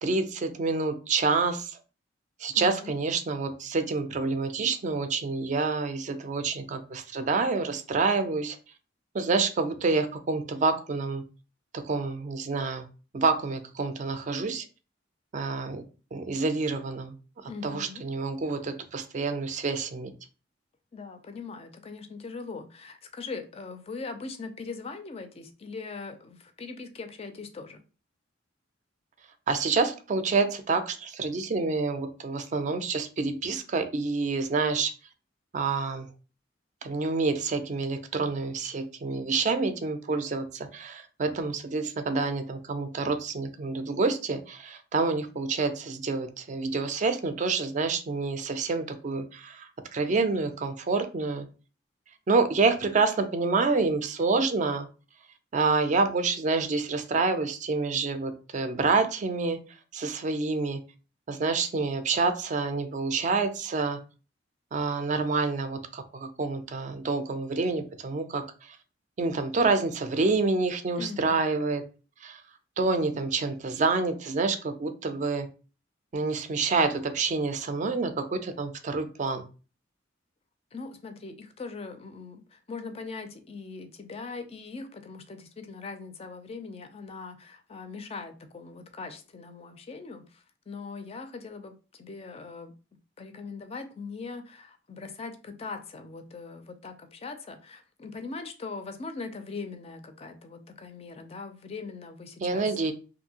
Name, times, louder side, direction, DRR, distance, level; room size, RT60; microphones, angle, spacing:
voice 1, 0.0-1.8 2.4-8.6 9.1-11.2 11.7-12.9 13.1-14.6 15.3-15.8 16.1-17.1 17.4-20.1 29.5-34.9 35.5-36.1 36.8-51.5 52.3-54.9 55.5-59.6 59.9-60.8 61.3-64.0 64.7-68.8 69.2-71.8 72.2-72.4 72.8-75.5 76.1-79.4 102.4-102.9, right 4 dB, 40° right, 8 dB, 0.4 m, -28 dB
voice 2, 2.5-2.9 17.4-18.0 20.9-27.8 71.0-71.5 80.7-92.7 93.2-102.7, left 4 dB, 30° left, 8 dB, 0.4 m, -41 dB
2.6 x 2.6 x 2.8 m, 0.34 s
head